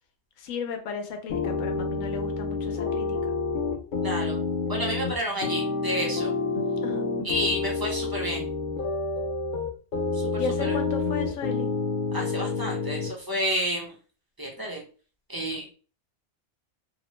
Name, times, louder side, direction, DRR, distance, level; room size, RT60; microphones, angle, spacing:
voice 1, 0.4-3.2 6.8-7.1 10.3-11.7, left 6 dB, 80° left, 6 dB, 1.0 m, -34 dB
sound 1, 1.3-13.1, left 4 dB, 55° left, 0.6 m, -28 dB
voice 2, 4.0-4.4 4.7-6.3 7.2-8.4 10.1-10.8 12.1-13.9 14.4-14.8 15.3-15.7, equal, 25° right, -2 dB, 0.5 m, -30 dB
2.8 x 2.0 x 3.0 m, 0.37 s
omnidirectional pair, 1.4 m